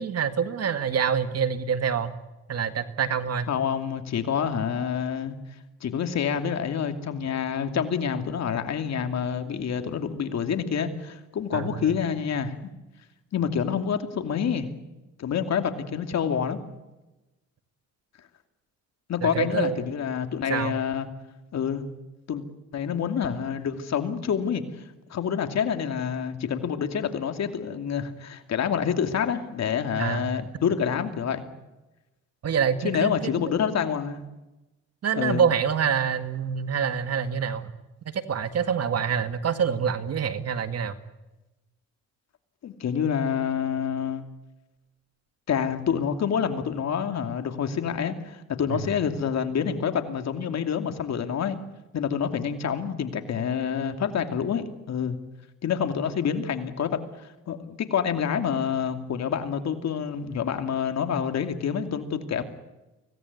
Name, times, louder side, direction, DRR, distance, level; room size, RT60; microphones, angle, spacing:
voice 1, 0.0-2.1 2.5-3.5 11.5-11.9 19.2-19.9 20.5-20.8 30.0-30.3 32.4-33.5 35.0-37.7 38.1-41.0 48.7-48.8, right 7 dB, 55° right, 10 dB, 2.0 m, -26 dB
voice 2, 3.5-5.3 5.8-12.6 13.3-14.7 15.2-16.6 19.1-21.1 21.5-21.8 22.3-22.4 22.7-24.6 25.1-31.4 32.8-34.2 35.1-35.4 42.6-44.2 45.5-51.6 51.9-55.2 55.6-62.4, left 7 dB, 60° left, 7 dB, 2.7 m, -27 dB
24.5 x 18.0 x 9.6 m, 1.0 s
cardioid pair, 90°, 30 cm